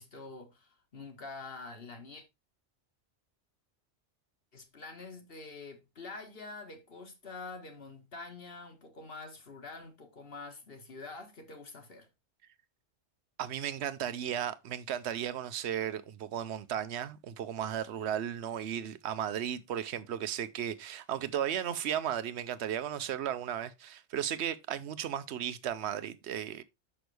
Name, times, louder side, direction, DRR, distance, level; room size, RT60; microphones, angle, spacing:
voice 1, 0.0-2.2 4.5-12.1, left 3 dB, 55° left, 1.5 m, -46 dB
voice 2, 13.4-26.6, right 10 dB, 70° right, 0.9 m, -35 dB
6.1 x 6.0 x 3.3 m
omnidirectional pair, 1.2 m